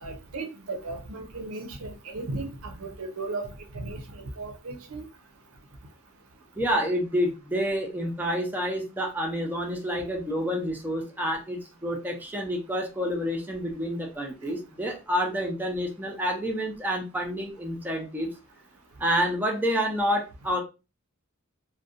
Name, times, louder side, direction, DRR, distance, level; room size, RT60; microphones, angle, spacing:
voice 1, 0.0-4.0 4.4-5.1, right 2 dB, 85° right, 0.6 m, -36 dB
voice 2, 6.6-18.3 19.0-20.6, equal, 10° right, 0.5 m, -28 dB
2.6 x 2.1 x 2.4 m
head